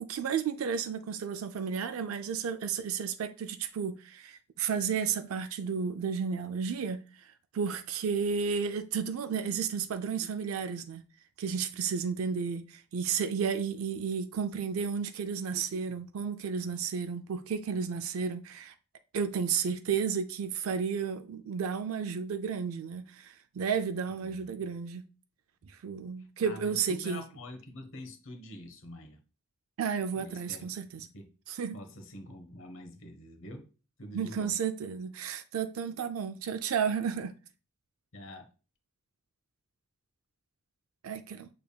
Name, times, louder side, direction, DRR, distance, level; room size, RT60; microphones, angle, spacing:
voice 1, 0.0-11.0 11.4-18.7 19.1-25.0 25.6-27.2 29.8-31.1 31.5-31.8 34.1-37.3 41.0-41.5, right 6 dB, 75° right, 0.4 m, -32 dB
voice 2, 24.2-24.6 26.2-29.2 30.1-30.7 31.0-31.3 31.7-33.7 34.0-34.6 38.1-38.5, equal, 65° left, 0.9 m, -46 dB
6.6 x 3.4 x 2.3 m
head